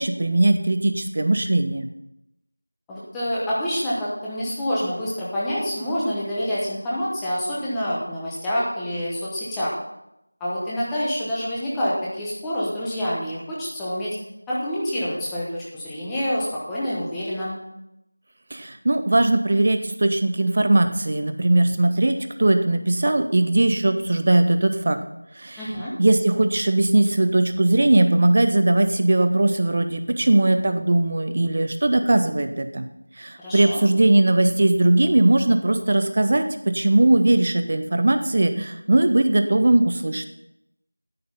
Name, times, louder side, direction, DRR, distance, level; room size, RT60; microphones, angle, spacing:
voice 1, 0.0-1.9 18.5-25.0 25.4-25.6 26.0-32.9 33.2-40.3, right 2 dB, 25° right, 8 dB, 0.7 m, -19 dB
voice 2, 2.9-9.7 10.4-14.1 14.5-17.6 25.6-25.9 33.4-33.8, equal, 5° left, -9 dB, 1.0 m, -27 dB
10.5 x 8.7 x 5.6 m, 0.84 s
figure-of-eight pair, 175°, 0 cm